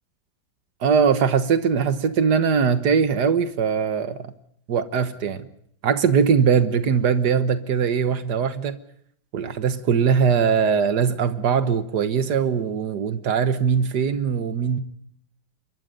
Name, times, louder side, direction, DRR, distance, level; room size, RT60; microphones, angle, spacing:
voice 1, 0.8-4.4 4.7-5.5 5.8-8.8 9.3-14.8, right 6 dB, 65° right, 1.9 m, -21 dB
27.0 x 22.5 x 5.3 m
omnidirectional pair, 1.9 m